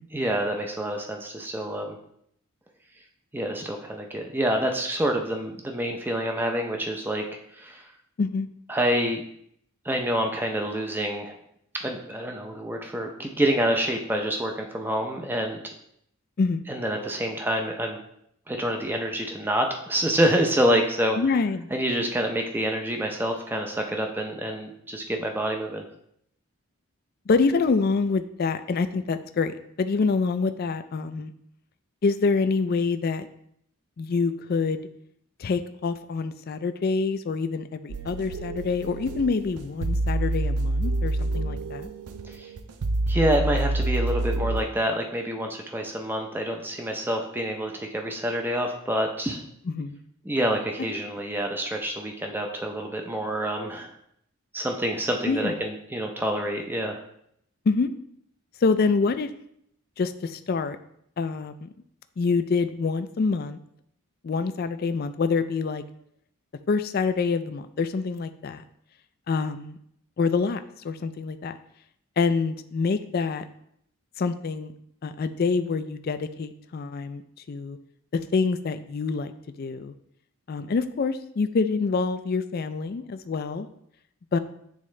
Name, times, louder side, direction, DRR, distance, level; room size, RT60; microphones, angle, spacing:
voice 1, 0.1-2.0 3.3-7.2 7.5-7.9 8.7-9.2 9.8-11.3 11.7-15.7 16.7-18.0 18.5-21.2 21.7-25.8 42.2-42.5 43.1-49.4 50.2-53.9 54.5-57.0, equal, 10° right, 2 dB, 0.5 m, -27 dB
voice 2, 21.2-21.7 27.3-29.5 29.8-31.3 32.0-33.3 34.0-34.8 35.4-41.9 49.7-50.0 55.3-55.5 57.7-57.9 58.6-59.3 60.0-60.8 61.2-61.7 62.2-63.6 64.2-65.8 66.7-68.6 69.3-69.8 70.2-71.6 72.2-73.4 74.2-74.7 75.0-77.2 77.5-77.8 78.1-79.3 79.6-79.9 80.5-83.7 84.3-84.4, left 4 dB, 45° left, 11 dB, 0.3 m, -26 dB
sound 1, 37.9-44.6, right 2 dB, 85° right, 0.5 m, -27 dB
8.5 x 3.6 x 3.2 m, 0.72 s
head